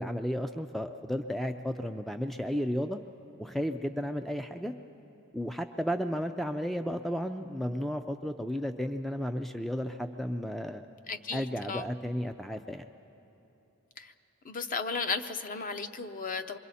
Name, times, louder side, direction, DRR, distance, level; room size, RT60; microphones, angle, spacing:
voice 1, 0.0-3.0 3.4-4.7 5.3-10.8 11.3-12.9, equal, ahead, 7 dB, 0.4 m, -33 dB
voice 2, 11.1-11.9 14.0-14.1 14.4-16.6, left 4 dB, 40° left, 8 dB, 0.7 m, -35 dB
26.5 x 23.5 x 4.2 m, 3.0 s
head